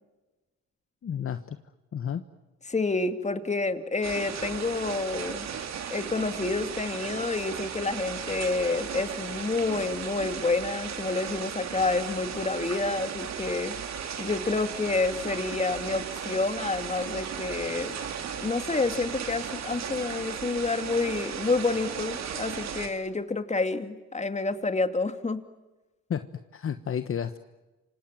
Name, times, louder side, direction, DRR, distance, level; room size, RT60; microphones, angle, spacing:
voice 1, 1.0-1.6 1.9-2.2 26.1-27.4, left 8 dB, 45° left, 10 dB, 1.3 m, -32 dB
voice 2, 2.7-5.5 5.9-13.7 14.2-18.0 18.4-25.4, left 3 dB, 25° left, 9 dB, 2.5 m, -29 dB
sound 1, 4.0-22.9, right 7 dB, 65° right, 3.7 m, -36 dB
29.0 x 26.5 x 7.5 m, 1.1 s
cardioid pair, 90°, 30 cm